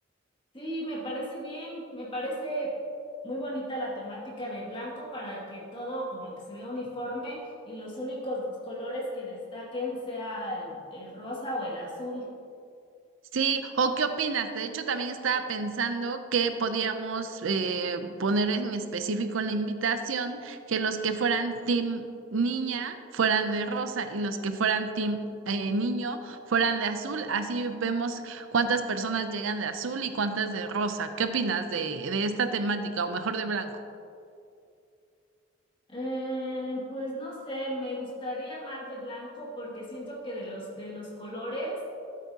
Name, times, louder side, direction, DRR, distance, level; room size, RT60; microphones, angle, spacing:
voice 1, 0.5-2.8 3.2-12.3 35.9-41.8, equal, 25° left, -5 dB, 2.2 m, -35 dB
voice 2, 13.3-33.7, right 4 dB, 75° right, 9 dB, 0.6 m, -28 dB
13.0 x 8.4 x 2.8 m, 2.5 s
head